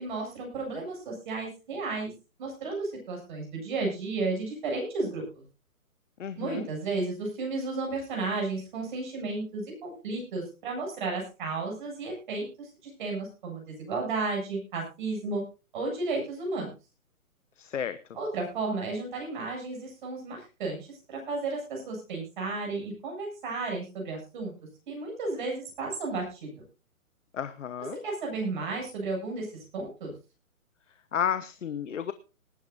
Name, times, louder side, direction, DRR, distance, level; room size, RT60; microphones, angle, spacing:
voice 1, 0.0-2.1 2.4-5.4 6.4-15.4 15.7-16.7 18.1-20.8 21.1-24.5 24.9-26.5 27.9-29.5 29.7-30.1, right 3 dB, 35° right, 0 dB, 8.0 m, -33 dB
voice 2, 6.2-6.7 17.6-18.0 27.3-28.0 31.1-32.1, left 8 dB, 60° left, 12 dB, 1.1 m, -32 dB
19.5 x 12.5 x 2.7 m, 0.31 s
hypercardioid pair, 170°, 42 cm